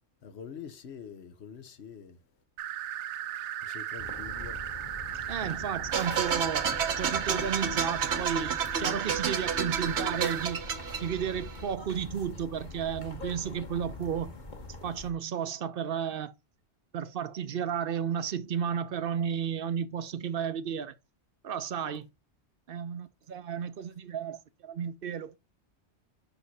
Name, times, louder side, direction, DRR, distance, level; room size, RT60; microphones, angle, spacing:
voice 1, 0.2-2.2 3.6-4.6, left 7 dB, 70° left, 1.2 m, -45 dB
sound 1, 2.6-10.5, right 11 dB, 90° right, 0.9 m, -36 dB
sound 2, 4.0-15.1, left 3 dB, 45° left, 1.3 m, -43 dB
voice 2, 5.3-6.7 7.0-10.6 11.0-14.3 14.8-16.3 16.9-20.9 21.4-22.0 22.7-25.4, right 8 dB, 60° right, 0.8 m, -33 dB
sound 3, 5.9-11.7, right 7 dB, 75° right, 1.1 m, -31 dB
6.0 x 5.4 x 4.1 m
omnidirectional pair, 1.2 m